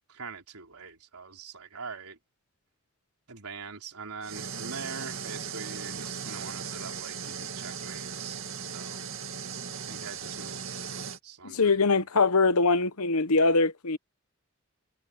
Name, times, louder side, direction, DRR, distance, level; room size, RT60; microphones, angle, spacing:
voice 1, 0.1-2.2 3.3-9.0 9.9-10.6 11.2-12.0, right 5 dB, 85° right, 4.1 m, -43 dB
sound 1, 4.2-11.2, right 6 dB, 65° right, 2.3 m, -37 dB
voice 2, 11.4-14.0, left 3 dB, 85° left, 1.1 m, -23 dB
head